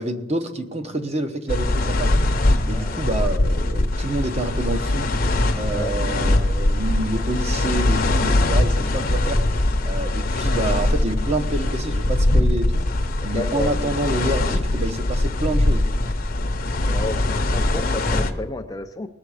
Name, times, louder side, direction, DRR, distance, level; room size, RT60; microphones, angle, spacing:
voice 1, 0.0-2.2 2.7-5.2 5.5-9.4 9.8-12.9 13.2-15.9, right 2 dB, 30° right, 6 dB, 0.9 m, -27 dB
sound 1, 1.5-18.3, left 1 dB, 45° left, 0.8 m, -21 dB
voice 2, 13.3-13.9 16.9-19.1, left 2 dB, 15° left, 6 dB, 0.4 m, -31 dB
19.5 x 6.9 x 4.9 m, 0.98 s
head